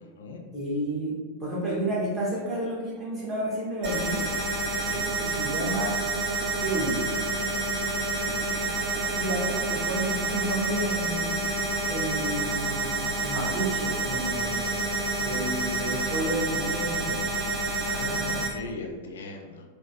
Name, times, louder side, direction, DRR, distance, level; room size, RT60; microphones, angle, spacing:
voice 1, 0.0-0.4 4.7-5.0 8.1-8.7 9.0-9.4 17.9-19.6, left 3 dB, 65° left, 3 dB, 0.4 m, -40 dB
voice 2, 0.5-4.3 5.2-6.0 6.6-7.1 9.2-11.3 11.9-14.8 15.2-17.3, right 1 dB, 25° right, -6 dB, 1.3 m, -31 dB
sound 1, 3.8-18.5, right 2 dB, 55° right, 1.2 m, -28 dB
3.8 x 2.3 x 2.7 m, 1.4 s
figure-of-eight pair, 90°, 0 cm